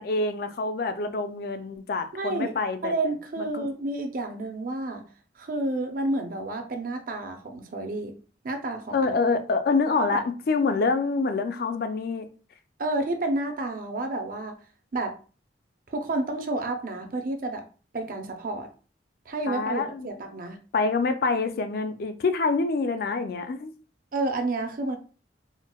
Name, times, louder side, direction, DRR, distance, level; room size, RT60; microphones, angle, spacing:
voice 1, 0.0-2.9 3.4-3.7 8.9-12.3 19.5-20.1 20.7-23.7, left 4 dB, 50° left, 0.3 m, -26 dB
voice 2, 2.1-2.6 2.8-5.0 5.4-8.1 8.4-9.2 10.0-10.2 12.8-14.5 14.9-15.1 15.9-17.6 17.9-18.7 19.3-20.6 24.1-25.0, right 2 dB, 45° right, 0.5 m, -30 dB
4.4 x 2.0 x 2.2 m
head